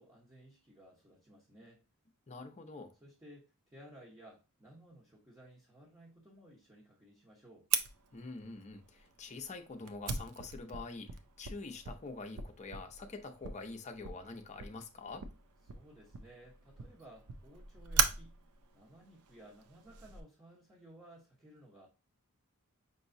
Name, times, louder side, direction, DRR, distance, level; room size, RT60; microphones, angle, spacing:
voice 1, 0.0-1.8 3.0-7.7 15.7-18.4 18.7-21.9, right 1 dB, 15° right, 0.9 m, -57 dB
voice 2, 2.3-2.9 8.1-11.1 11.4-15.3, left 3 dB, 30° left, 0.6 m, -45 dB
Fire, 7.7-20.2, right 7 dB, 80° right, 0.5 m, -39 dB
5.4 x 2.9 x 2.6 m
head